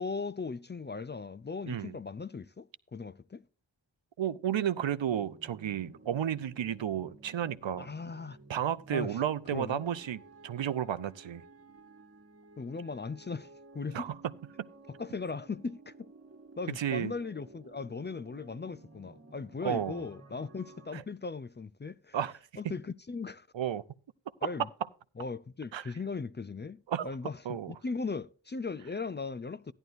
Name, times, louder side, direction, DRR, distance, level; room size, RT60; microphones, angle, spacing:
voice 1, 0.0-3.4 7.8-8.4 8.9-9.2 9.5-9.8 12.6-14.1 15.0-16.1 16.6-22.2 22.6-23.5 24.4-24.7 25.2-29.7, left 4 dB, 25° left, 0.4 m, -38 dB
voice 2, 4.2-7.9 8.5-11.4 13.9-14.2 16.7-17.1 19.6-20.0 20.9-21.0 22.1-22.3 22.6-22.7 23.5-23.8 25.7-25.9 26.9-27.1 27.5-27.7, right 10 dB, 80° right, 0.6 m, -32 dB
sound 1, 5.1-21.0, right 3 dB, 35° right, 1.6 m, -54 dB
14.5 x 11.0 x 2.5 m
wide cardioid pair, 50°, 44 cm